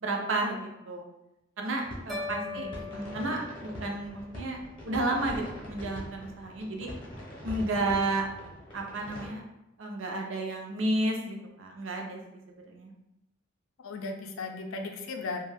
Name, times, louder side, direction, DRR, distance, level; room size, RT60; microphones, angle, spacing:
voice 1, 0.0-1.0 1.6-4.6 4.8-6.9 7.4-8.3 8.7-9.4 9.8-12.2 12.5-12.9, right 2 dB, 70° right, 1 dB, 0.5 m, -32 dB
sound 1, 1.8-9.3, equal, 25° left, 0.8 m, -43 dB
sound 2, 2.1-4.4, left 3 dB, ahead, 0.4 m, -40 dB
voice 2, 2.3-2.9 13.8-15.5, left 3 dB, 80° left, 4 dB, 0.4 m, -37 dB
2.6 x 2.2 x 3.2 m, 0.89 s
head